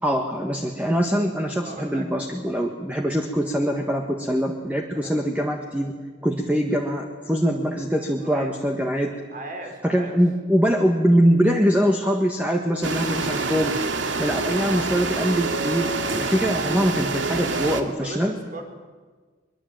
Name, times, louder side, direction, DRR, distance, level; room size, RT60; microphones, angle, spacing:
voice 1, 0.0-6.0 6.2-9.1 9.8-13.8 14.2-18.3, equal, 10° right, 2 dB, 1.6 m, -23 dB
voice 2, 1.6-2.1 4.9-5.2 8.2-8.5 9.3-10.2 17.5-18.6, right 1 dB, 45° right, 4 dB, 4.1 m, -38 dB
sound 1, 12.8-17.8, right 3 dB, 85° right, 2.3 m, -26 dB
23.0 x 23.0 x 9.1 m, 1.4 s
head